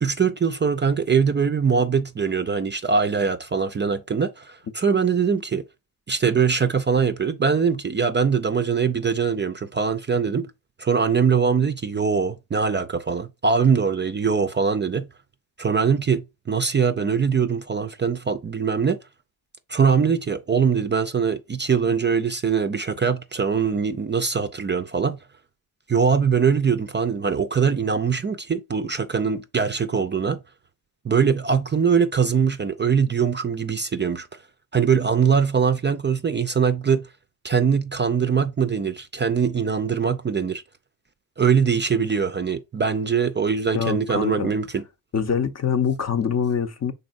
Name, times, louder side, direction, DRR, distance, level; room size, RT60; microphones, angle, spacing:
voice 1, 0.0-5.6 6.1-10.5 10.8-15.1 15.6-16.2 16.5-19.0 19.7-25.2 25.9-30.4 31.0-34.3 34.7-37.0 37.4-40.6 41.4-44.8, right 6 dB, 25° right, 0.4 m, -22 dB
voice 2, 43.7-44.5 45.1-46.9, left 7 dB, 40° left, 0.6 m, -24 dB
5.2 x 4.0 x 2.5 m
cardioid pair, 100°, 41 cm